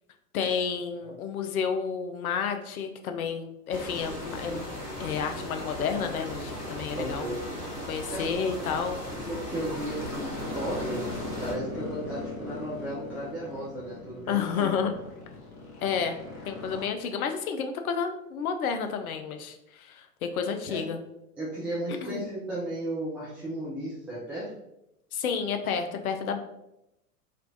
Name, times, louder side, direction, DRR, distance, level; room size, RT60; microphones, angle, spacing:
voice 1, 0.3-4.6 5.0-7.3 7.9-9.0 14.3-14.9 15.8-16.2 16.5-21.0 22.0-22.2 25.1-26.4, left 6 dB, 70° left, 6 dB, 0.6 m, -30 dB
sound 1, 3.7-11.5, equal, 90° left, 1.1 m, -37 dB
voice 2, 6.9-7.4 8.1-8.4 9.2-14.7 20.7-20.8 21.4-24.5, right 1 dB, 5° right, -10 dB, 0.3 m, -35 dB
sound 2, 9.1-16.9, left 2 dB, 45° left, 1.1 m, -40 dB
3.2 x 2.9 x 2.6 m, 0.85 s
figure-of-eight pair, 90°, 45 cm